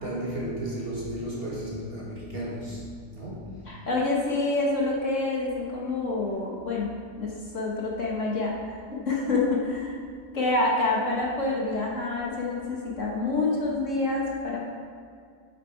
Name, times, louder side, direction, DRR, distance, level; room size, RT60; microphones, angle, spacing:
voice 1, 0.0-2.8 3.1-3.5, right 1 dB, 35° right, -6 dB, 2.2 m, -33 dB
voice 2, 3.7-6.9 7.2-10.0 10.3-14.7, left 2 dB, 50° left, -3 dB, 1.5 m, -27 dB
8.9 x 7.5 x 4.6 m, 2.2 s
omnidirectional pair, 1.7 m